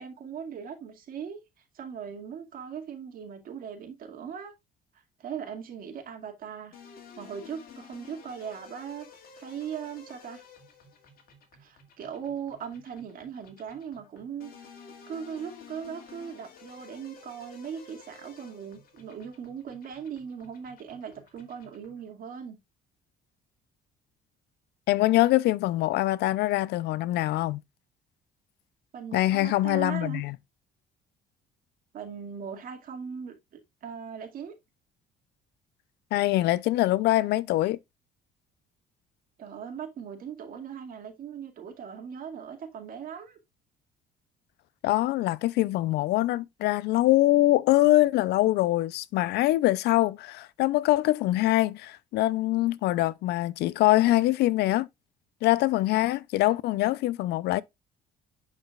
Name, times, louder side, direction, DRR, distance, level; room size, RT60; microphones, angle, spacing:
voice 1, 0.0-1.4 1.7-4.5 5.2-6.8 7.2-9.1 9.4-10.4 11.6-14.7 15.1-22.6 28.9-30.2 31.9-34.5 39.4-43.4, right 7 dB, 60° right, 2.2 m, -39 dB
sound 1, 6.7-22.1, left 5 dB, 60° left, 2.2 m, -52 dB
voice 2, 24.9-27.6 29.1-30.4 36.1-37.8 44.8-54.9 55.4-57.6, left 16 dB, 80° left, 0.5 m, -24 dB
11.0 x 4.8 x 2.4 m
cardioid pair, 110°, 17 cm